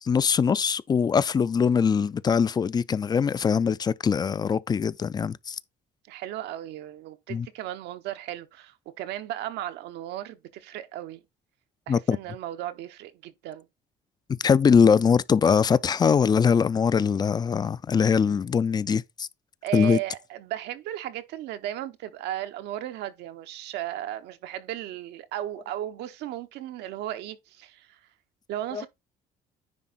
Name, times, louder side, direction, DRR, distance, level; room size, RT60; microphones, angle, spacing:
voice 1, 0.0-5.6 7.3-7.5 11.9-12.2 14.4-19.3 19.7-20.0 28.7-28.9, left 6 dB, 25° left, 0.4 m, -22 dB
voice 2, 6.1-11.2 11.9-13.7 19.6-28.0 28.5-28.9, right 13 dB, 85° right, 0.9 m, -35 dB
9.9 x 3.7 x 4.1 m
cardioid pair, 110°, 17 cm